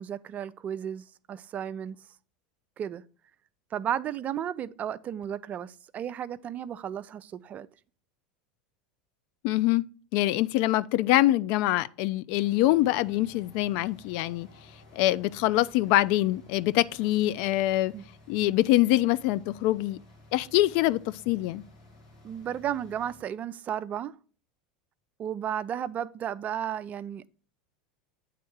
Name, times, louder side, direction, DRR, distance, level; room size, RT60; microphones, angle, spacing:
voice 1, 0.0-2.0 2.8-3.0 3.7-7.7 17.9-18.0 22.2-24.1 25.2-27.3, right 9 dB, 35° right, 0.4 m, -34 dB
voice 2, 9.4-9.9 10.1-14.5 14.9-17.9 18.3-20.0 20.3-21.6, left 16 dB, 60° left, 0.3 m, -24 dB
sound 1, 12.3-23.2, left 2 dB, 85° left, 2.1 m, -54 dB
8.4 x 3.6 x 4.6 m
hypercardioid pair, 95°, 4 cm